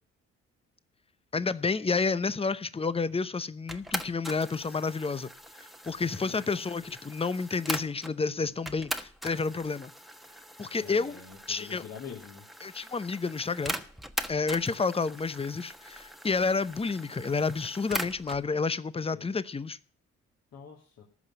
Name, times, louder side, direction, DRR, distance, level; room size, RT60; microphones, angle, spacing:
voice 1, 1.3-5.3 5.8-9.9 10.6-11.2 11.5-11.8 12.6-13.7 14.3-19.8, left 4 dB, 20° left, 0.8 m, -30 dB
sound 1, 3.7-8.2 8.7-18.4, equal, ahead, 1.3 m, -40 dB
voice 2, 6.0-6.5 10.8-12.5 19.1-19.3 20.5-21.0, left 7 dB, 55° left, 2.2 m, -45 dB
14.5 x 5.7 x 9.7 m
hypercardioid pair, 50°, 31 cm